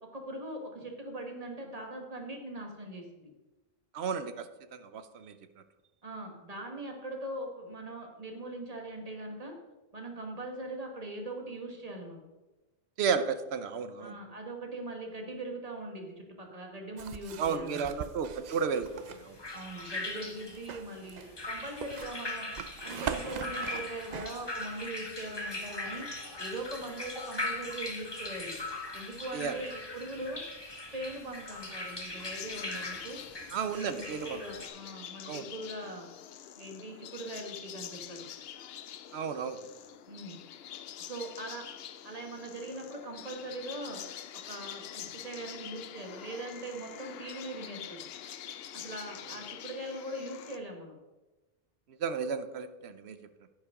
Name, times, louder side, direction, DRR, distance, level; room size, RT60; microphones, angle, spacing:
voice 1, 0.0-3.3 6.0-9.5 9.9-12.2 14.0-17.9 19.5-22.5 22.8-26.1 26.4-28.6 28.9-30.4 30.9-33.2 33.6-36.1 36.6-38.3 40.1-40.3 41.0-41.7 42.0-44.0 44.5-48.1 48.7-51.0, right 1 dB, 35° right, 2 dB, 1.6 m, -41 dB
voice 2, 3.9-5.3 13.0-14.2 17.4-19.4 29.3-29.6 33.5-34.4 35.3-35.5 39.1-39.6 51.9-53.2, right 6 dB, 80° right, 10 dB, 1.0 m, -33 dB
sound 1, 17.0-19.2 20.5-24.3, right 8 dB, 55° right, 0.5 m, -41 dB
sound 2, 18.7-34.7, left 2 dB, 25° left, 1.3 m, -40 dB
sound 3, 32.1-50.6, left 10 dB, 75° left, 0.8 m, -46 dB
9.9 x 9.7 x 3.6 m, 1.1 s
omnidirectional pair, 1.1 m